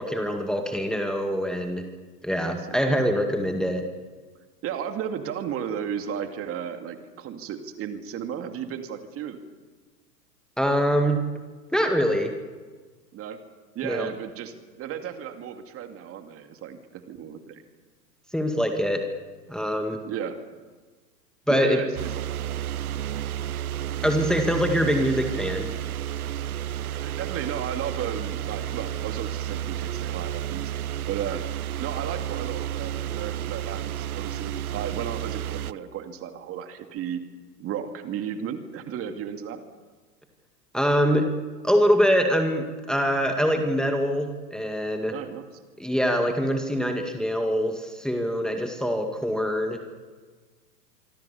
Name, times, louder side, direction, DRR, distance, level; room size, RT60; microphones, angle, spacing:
voice 1, 0.0-1.8 2.2-3.9 10.6-11.2 11.7-12.3 13.8-14.1 18.3-19.0 19.5-20.0 21.5-21.8 24.0-25.7 40.7-41.3 41.6-45.1 45.8-49.9, equal, ahead, 4 dB, 2.0 m, -24 dB
voice 2, 2.7-3.0 4.6-9.4 13.1-13.4 13.7-17.6 20.1-20.4 21.5-22.3 26.9-30.8 31.1-37.2 37.6-39.6 45.1-45.5, right 8 dB, 25° right, 6 dB, 2.4 m, -34 dB
sound 1, 22.0-35.7, right 11 dB, 65° right, 0.9 m, -31 dB
26.0 x 24.5 x 7.2 m, 1.4 s
figure-of-eight pair, 105°, 49 cm